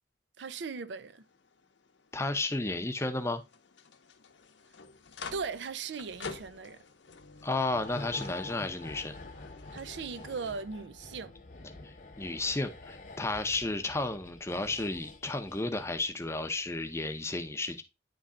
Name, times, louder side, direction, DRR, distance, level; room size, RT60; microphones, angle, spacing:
voice 1, 0.4-1.2 5.3-6.8 9.7-11.3, right 5 dB, 70° right, 0.4 m, -38 dB
sound 1, 0.9-10.6, left 4 dB, 75° left, 0.7 m, -49 dB
voice 2, 2.1-3.4 7.4-9.1 12.2-17.8, left 2 dB, 15° left, 0.6 m, -32 dB
sound 2, 7.7-16.3 16.5-16.7, left 2 dB, 45° left, 0.9 m, -47 dB
9.6 x 3.2 x 3.7 m
head